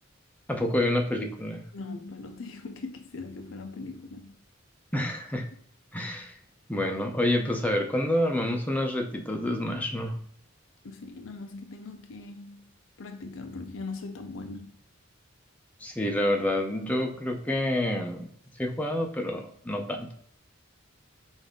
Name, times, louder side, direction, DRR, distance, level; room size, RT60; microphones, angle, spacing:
voice 1, 0.5-1.6 4.9-5.5 5.9-6.4 6.7-10.2 15.8-18.3 18.6-20.1, left 1 dB, 10° left, 0.7 m, -28 dB
voice 2, 1.7-4.4 10.8-12.7 13.0-14.8, left 3 dB, 75° left, 0.6 m, -40 dB
5.3 x 2.6 x 3.7 m
head